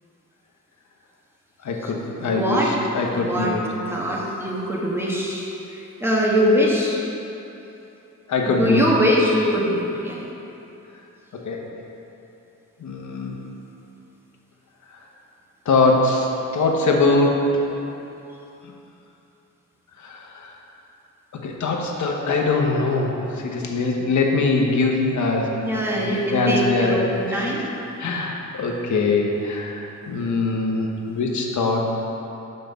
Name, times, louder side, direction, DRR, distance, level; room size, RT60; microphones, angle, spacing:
voice 1, 1.6-3.6 8.3-8.9 11.3-11.6 12.8-13.4 15.6-16.3 16.5-17.5 20.0-20.5 21.4-23.2 23.4-25.6 26.0-27.1 27.4-27.5 28.0-31.9, left 3 dB, 60° left, 0 dB, 1.2 m, -22 dB
voice 2, 2.2-2.7 3.1-3.5 3.9-7.0 8.4-10.2 25.6-27.6, equal, 5° right, -4 dB, 1.6 m, -22 dB
5.9 x 5.4 x 6.9 m, 2.9 s
cardioid pair, 80°, 32 cm